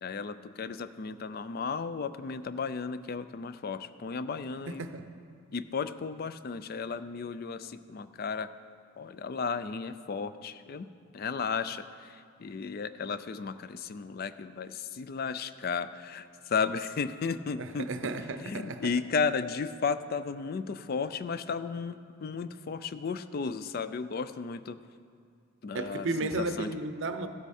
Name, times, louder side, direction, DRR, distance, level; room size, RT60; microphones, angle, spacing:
voice 1, 0.0-4.8 5.5-8.5 9.0-10.9 11.1-17.9 18.4-24.8 25.6-26.7, left 5 dB, 45° left, 13 dB, 0.3 m, -34 dB
voice 2, 17.6-18.9 25.7-27.3, right 3 dB, 55° right, 9 dB, 0.6 m, -33 dB
15.0 x 8.1 x 4.2 m, 2.3 s
head